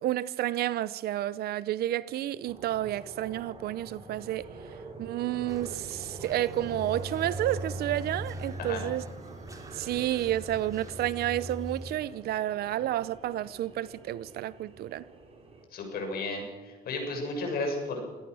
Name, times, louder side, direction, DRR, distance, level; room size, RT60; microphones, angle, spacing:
voice 1, 0.0-4.5 5.0-9.0 9.7-15.0, right 13 dB, 65° right, 0.7 m, -30 dB
sound 1, 2.4-15.6, right 2 dB, 35° right, 4.4 m, -46 dB
sound 2, 5.5-11.8, right 1 dB, 20° right, 2.6 m, -41 dB
voice 2, 15.7-18.0, left 2 dB, 65° left, 6.9 m, -33 dB
25.0 x 18.0 x 6.3 m
cardioid pair, 110°, 17 cm